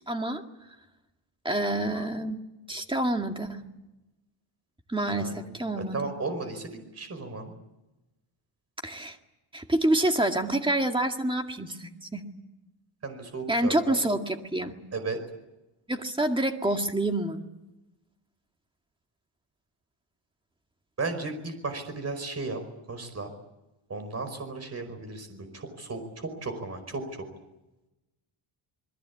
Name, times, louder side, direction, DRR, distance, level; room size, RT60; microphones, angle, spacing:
voice 1, 0.1-0.4 1.4-2.4 2.7-3.6 4.9-6.1 8.8-9.2 9.5-12.2 13.5-14.8 15.9-17.4, right 1 dB, 10° right, 4 dB, 2.0 m, -27 dB
voice 2, 5.1-7.5 13.0-14.0 14.9-15.2 21.0-22.6 22.9-23.3 23.9-27.3, right 3 dB, 30° right, 7 dB, 5.1 m, -35 dB
27.5 x 21.0 x 8.5 m, 0.98 s
wide cardioid pair, 155°, 50 cm